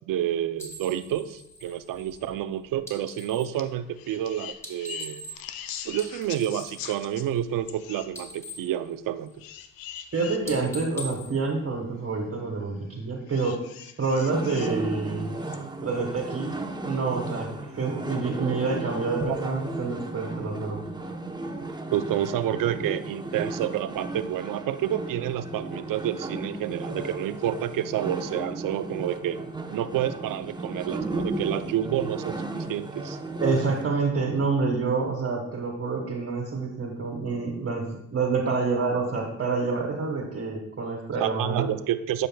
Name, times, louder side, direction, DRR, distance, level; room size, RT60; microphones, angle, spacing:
voice 1, 0.1-5.2 5.8-9.3 21.9-29.4 29.7-33.2 41.2-42.3, right 11 dB, 70° right, 12 dB, 0.6 m, -29 dB
sound 1, 0.6-3.6 4.5-5.6 5.9-7.8 8.0-9.6 9.9-10.2 10.4-12.3, left 1 dB, 10° left, 2.3 m, -43 dB
sound 2, 3.5-3.7 3.9-7.3 7.7-8.1 9.4-10.4 11.2-11.3 13.3-14.8 15.5-15.6, left 10 dB, 85° left, 0.6 m, -41 dB
voice 2, 10.1-13.6 14.0-15.3 15.8-16.5 16.8-17.5 17.7-20.8 31.6-31.7 33.3-41.7, right 4 dB, 40° right, 0 dB, 1.5 m, -27 dB
sound 3, 14.3-33.9, right 2 dB, 10° right, 0.8 m, -34 dB
11.5 x 5.0 x 2.3 m, 0.76 s
supercardioid pair, 65°, 34 cm